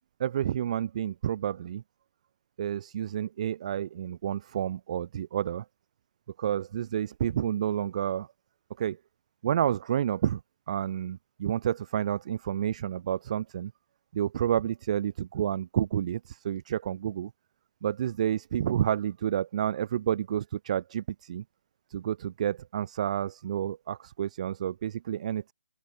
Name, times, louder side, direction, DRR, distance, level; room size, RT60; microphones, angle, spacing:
voice 1, 0.2-1.8 2.6-5.6 6.4-8.3 8.8-9.0 9.4-10.4 10.7-13.7 14.1-17.3 17.8-21.4 21.9-25.5, right 10 dB, 35° right, 1.3 m, -30 dB
open air
figure-of-eight pair, 150°, 6 cm